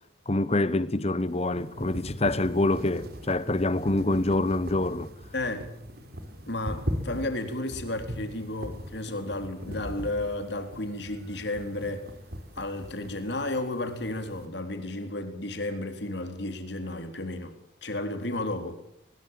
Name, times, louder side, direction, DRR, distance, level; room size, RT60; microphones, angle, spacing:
voice 1, 0.3-5.1, left 2 dB, 35° left, 1.0 m, -26 dB
sound 1, 1.2-14.5, equal, 55° right, 3.3 m, -40 dB
voice 2, 5.3-5.7 6.5-12.1 12.6-17.6 17.8-18.8, left 2 dB, 60° left, 3.9 m, -33 dB
23.5 x 21.5 x 7.6 m
head